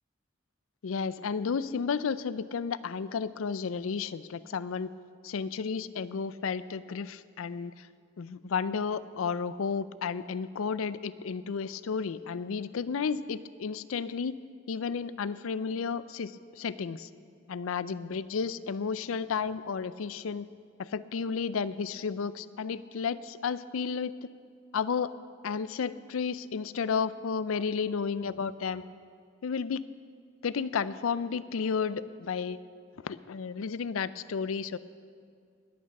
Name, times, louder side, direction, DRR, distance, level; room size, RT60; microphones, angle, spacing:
voice 1, 0.8-4.9 5.2-7.9 8.2-14.4 14.7-17.1 17.5-20.5 20.8-24.1 24.7-25.1 25.4-28.8 29.4-29.8 30.4-32.6 33.0-34.8, left 5 dB, 90° left, 16 dB, 0.4 m, -32 dB
20.5 x 8.8 x 5.3 m, 2.2 s
head